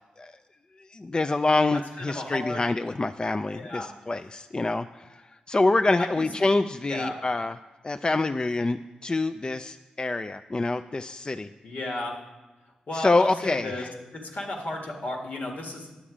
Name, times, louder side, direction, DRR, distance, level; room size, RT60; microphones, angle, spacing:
voice 1, 0.9-7.6 7.8-11.5 12.9-13.9, left 2 dB, 30° left, 11 dB, 0.3 m, -26 dB
voice 2, 1.7-2.6 3.5-3.9 6.0-6.3 6.9-7.2 11.6-12.2 12.9-15.9, left 1 dB, 65° left, 0 dB, 1.8 m, -34 dB
10.0 x 7.1 x 4.9 m, 1.2 s
supercardioid pair, 45°, 3 cm